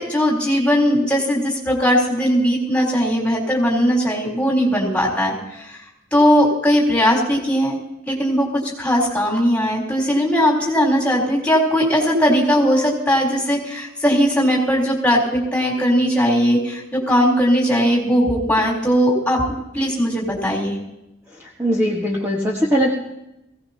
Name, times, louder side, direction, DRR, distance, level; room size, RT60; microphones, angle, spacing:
voice 1, 0.0-5.7 6.1-7.8 8.1-19.4 19.7-20.8, equal, 5° left, -4 dB, 3.7 m, -18 dB
voice 2, 21.4-22.9, equal, 15° right, -4 dB, 1.5 m, -20 dB
21.0 x 17.0 x 2.9 m, 0.88 s
head